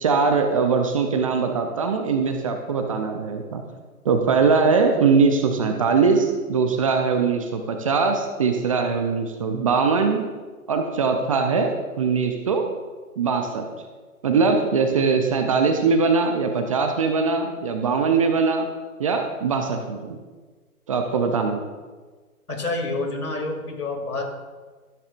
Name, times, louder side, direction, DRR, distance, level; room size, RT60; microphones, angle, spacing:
voice 1, 0.0-3.6 4.0-10.2 10.7-11.7 12.0-12.7 13.2-13.7 14.2-18.7 19.0-20.2 20.9-21.6, right 5 dB, 25° right, 5 dB, 0.6 m, -21 dB
voice 2, 22.5-24.4, left 2 dB, 80° left, 2 dB, 2.9 m, -28 dB
13.5 x 10.0 x 2.5 m, 1.4 s
figure-of-eight pair, 135°, 44 cm